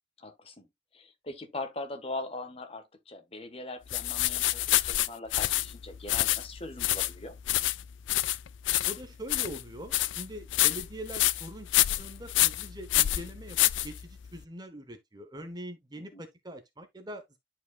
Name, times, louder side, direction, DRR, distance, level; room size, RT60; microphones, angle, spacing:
voice 1, 0.2-0.7 0.9-7.3 16.1-16.2, left 2 dB, 30° left, 1.3 m, -41 dB
sound 1, 3.9-14.4, left 15 dB, 80° left, 0.4 m, -28 dB
voice 2, 8.8-17.4, right 1 dB, 20° right, 0.9 m, -43 dB
11.0 x 4.9 x 2.3 m
head